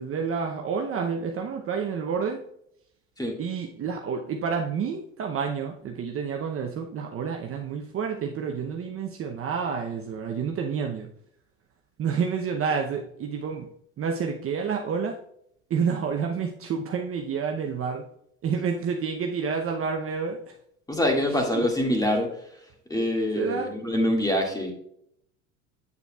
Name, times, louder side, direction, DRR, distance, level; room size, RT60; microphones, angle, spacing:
voice 1, 0.0-2.4 3.4-11.1 12.0-13.7 14.0-15.2 15.7-18.0 18.4-20.4 21.5-21.7 23.4-23.7, right 6 dB, 35° right, 2 dB, 0.7 m, -29 dB
voice 2, 20.9-22.3 22.9-24.7, left 1 dB, 10° left, 1 dB, 2.0 m, -25 dB
8.3 x 6.7 x 2.3 m, 0.71 s
hypercardioid pair, 85°, 38 cm